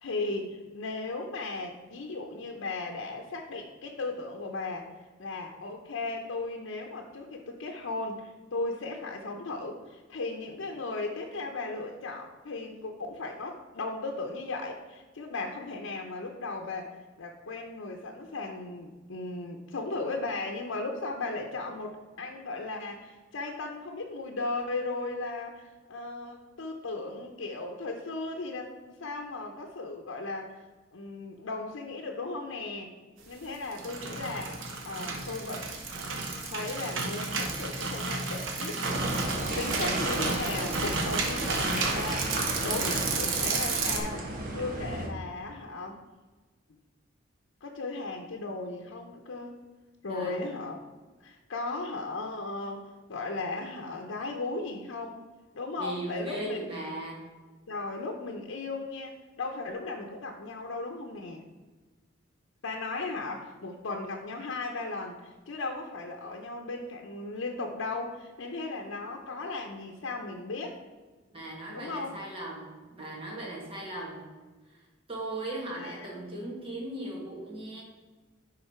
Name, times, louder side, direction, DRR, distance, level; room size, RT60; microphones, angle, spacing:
voice 1, 0.0-4.9 5.2-33.0 33.3-35.7 36.4-38.8 39.5-46.0 47.6-49.6 50.0-50.8 51.2-55.2 55.5-56.7 57.7-61.5 62.6-70.8 71.7-72.2 75.8-76.1, left 3 dB, 85° left, 2 dB, 0.7 m, -36 dB
sound 1, 33.5-44.0, right 3 dB, 80° right, 1.1 m, -32 dB
sound 2, 38.8-45.1, right 1 dB, 45° right, 1.3 m, -34 dB
voice 2, 50.1-50.4 55.8-57.3 71.3-74.3 74.7-77.8, right 1 dB, 30° right, -3 dB, 1.9 m, -38 dB
10.5 x 3.8 x 4.4 m, 1.3 s
head